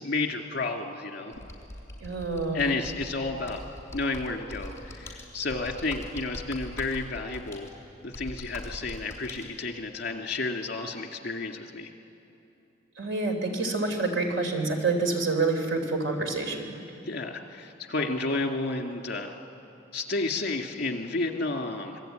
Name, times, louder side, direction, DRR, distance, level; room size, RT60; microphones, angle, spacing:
voice 1, 0.0-1.3 2.5-3.6 3.9-7.7 8.0-11.9 17.0-19.3 19.9-22.0, left 3 dB, 55° left, 4 dB, 2.3 m, -31 dB
Computer keyboard, 1.3-9.5, left 1 dB, 15° left, 4.6 m, -42 dB
voice 2, 2.0-2.6 13.0-16.7, right 3 dB, 80° right, 3 dB, 3.4 m, -27 dB
26.0 x 21.5 x 9.1 m, 2.8 s
head